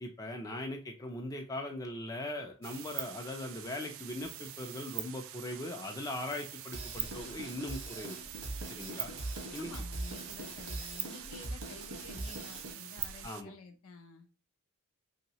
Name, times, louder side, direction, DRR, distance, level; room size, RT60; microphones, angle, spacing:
voice 1, 0.0-8.2 8.7-9.1 9.5-9.7 13.2-13.5, left 1 dB, 15° left, 2 dB, 0.4 m, -40 dB
sound 1, 2.6-13.4, right 12 dB, 60° right, 0.3 m, -44 dB
Drum kit / Drum, 6.7-12.7, right 2 dB, 85° right, 1.1 m, -42 dB
voice 2, 9.6-14.3, left 3 dB, 65° left, 5 dB, 0.6 m, -51 dB
3.0 x 2.8 x 2.8 m, 0.36 s
head